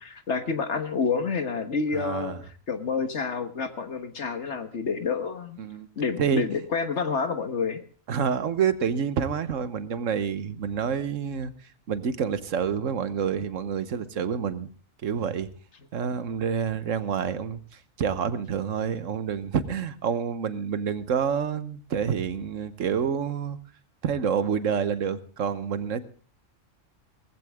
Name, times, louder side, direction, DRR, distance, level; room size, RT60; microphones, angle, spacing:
voice 1, 0.0-5.6 6.0-7.8, left 5 dB, 60° left, 1.6 m, -29 dB
voice 2, 1.9-2.4 5.6-5.9 6.2-6.4 8.1-11.5 11.9-14.7 15.0-15.5 15.9-17.6 18.0-23.6 24.0-26.0, right 7 dB, 75° right, 1.4 m, -28 dB
18.5 x 15.5 x 3.5 m
omnidirectional pair, 1.4 m